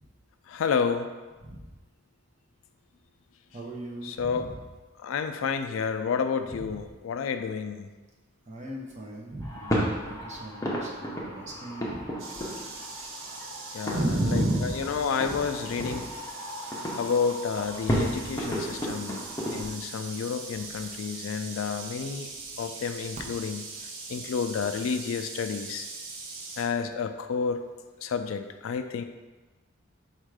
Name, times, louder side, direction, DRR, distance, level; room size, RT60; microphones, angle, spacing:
voice 1, 0.5-1.1 4.0-4.5 5.0-7.9 13.7-16.1 17.0-19.2 19.5-22.3 22.6-23.6 24.1-25.9 26.6-27.6 28.0-29.0, left 6 dB, 85° left, 8 dB, 0.3 m, -30 dB
voice 2, 3.5-4.5 6.7-6.8 8.5-12.0 13.9-15.0 15.3-15.4 15.7-15.8, right 1 dB, 35° right, -2 dB, 0.8 m, -33 dB
sound 1, 9.4-19.7, equal, 15° left, 0.6 m, -33 dB
sound 2, 12.2-26.7, right 3 dB, 85° right, 0.7 m, -42 dB
4.3 x 2.4 x 4.7 m, 1.2 s
head